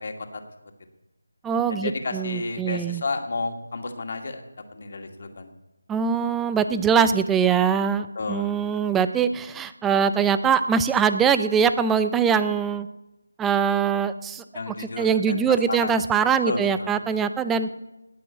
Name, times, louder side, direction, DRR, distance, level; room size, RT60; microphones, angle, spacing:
voice 1, 0.0-0.4 1.7-4.4 4.7-5.5 8.2-8.5 14.5-16.0 16.5-16.9, left 3 dB, 45° left, 5 dB, 2.1 m, -31 dB
voice 2, 1.4-3.0 5.9-12.9 13.4-17.7, right 7 dB, 5° right, 12 dB, 0.5 m, -22 dB
18.0 x 6.1 x 9.6 m, 0.99 s
figure-of-eight pair, 160°, 0 cm